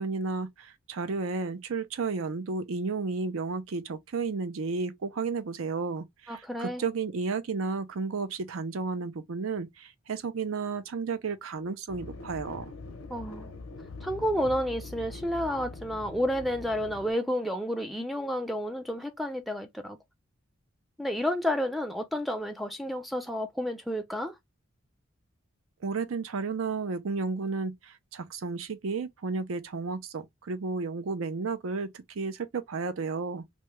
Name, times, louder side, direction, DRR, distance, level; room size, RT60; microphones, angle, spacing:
voice 1, 0.0-12.7 25.8-33.4, right 4 dB, 75° right, 0.5 m, -32 dB
voice 2, 6.3-6.8 13.1-13.5 14.0-20.0 21.0-24.4, equal, ahead, 0.3 m, -30 dB
sound 1, 11.9-17.1, left 3 dB, 85° left, 0.6 m, -43 dB
2.7 x 2.2 x 3.0 m
head